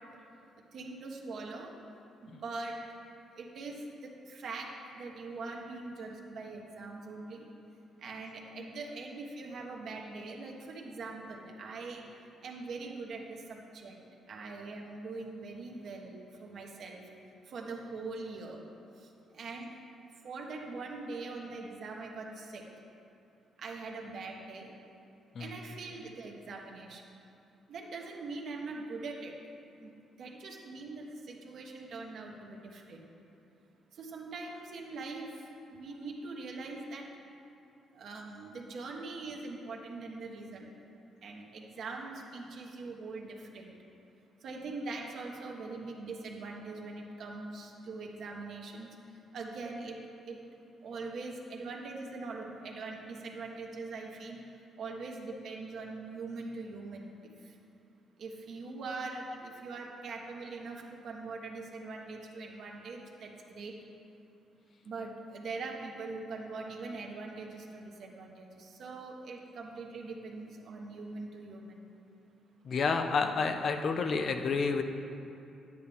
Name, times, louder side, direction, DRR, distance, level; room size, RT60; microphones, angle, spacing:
voice 1, 0.7-1.7 2.2-2.8 3.4-7.5 8.0-12.0 12.4-14.0 14.3-17.0 17.5-18.6 19.3-19.7 20.2-22.6 23.6-24.7 25.4-27.0 27.7-29.3 29.8-29.9 30.2-33.1 34.0-35.3 35.7-37.0 37.9-40.7 41.2-43.8 44.4-48.9 49.3-50.0 50.3-50.4 50.8-54.4 54.8-57.1 58.2-63.7 64.8-71.8, right 3 dB, 65° right, 0 dB, 1.3 m, -42 dB
voice 2, 72.6-74.8, left 4 dB, 55° left, 6 dB, 0.6 m, -29 dB
10.0 x 9.5 x 3.5 m, 2.7 s
cardioid pair, 90°, 0 cm